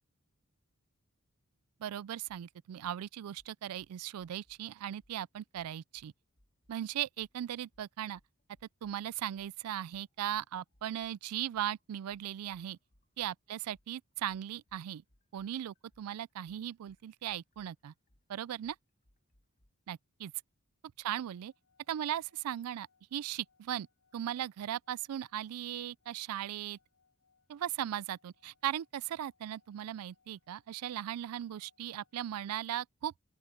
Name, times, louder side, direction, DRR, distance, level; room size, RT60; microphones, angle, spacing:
voice 1, 1.8-6.1 6.7-8.2 8.8-12.8 13.2-15.0 15.3-17.9 18.3-18.8 19.9-20.3 21.0-21.5 21.9-23.9 24.1-26.8 27.5-33.1, right 11 dB, 80° right, 0.3 m, -38 dB
sound 1, 2.3-2.4 2.8-3.0 3.3-4.6 5.0-5.2 5.5-6.8 7.2-7.3 7.7-9.0 9.3-13.3 13.7-19.7, left 1 dB, 35° left, 1.7 m, -71 dB
sound 2, 21.1-32.4, left 5 dB, 70° left, 4.7 m, -75 dB
open air
head